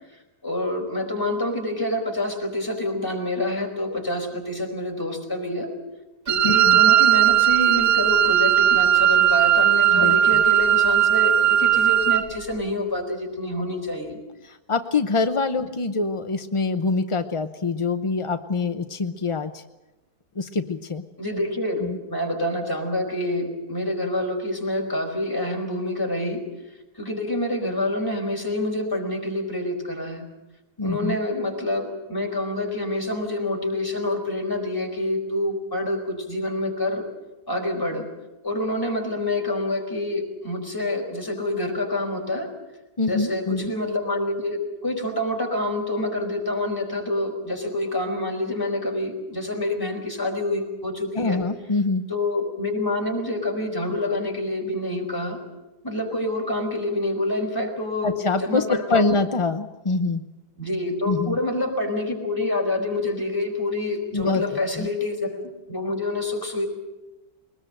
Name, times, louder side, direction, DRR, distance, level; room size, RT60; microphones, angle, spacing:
voice 1, 0.4-5.7 6.3-14.2 21.2-26.4 27.0-30.2 30.8-37.0 37.5-38.1 38.4-42.5 43.0-51.4 52.1-55.4 55.8-58.1 58.4-59.2 60.6-65.4 65.7-66.7, left 1 dB, 10° left, 1 dB, 4.7 m, -27 dB
Wind instrument woodwind instrument, 6.3-12.3, right 11 dB, 50° right, 1.4 m, -18 dB
voice 2, 6.4-6.8 9.9-10.4 14.4-19.6 20.4-21.0 21.8-22.0 30.8-31.2 43.0-43.7 51.1-52.0 58.0-60.2 61.1-61.4 64.1-64.4 64.8-64.9, left 3 dB, 45° left, 8 dB, 0.4 m, -25 dB
22.0 x 20.0 x 7.8 m, 1.0 s
omnidirectional pair, 1.7 m